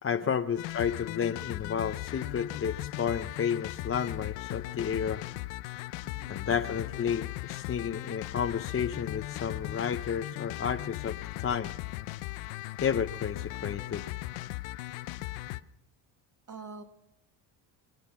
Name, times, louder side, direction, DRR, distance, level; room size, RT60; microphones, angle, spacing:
voice 1, 0.0-5.2 6.3-11.7 12.8-14.0, left 7 dB, 30° left, 4 dB, 0.8 m, -31 dB
sound 1, 0.6-15.6, left 17 dB, 85° left, 0.7 m, -38 dB
voice 2, 6.0-6.5 16.5-16.8, right 4 dB, 40° right, 7 dB, 1.9 m, -46 dB
24.5 x 9.7 x 5.9 m, 0.82 s
cardioid pair, 95°, 44 cm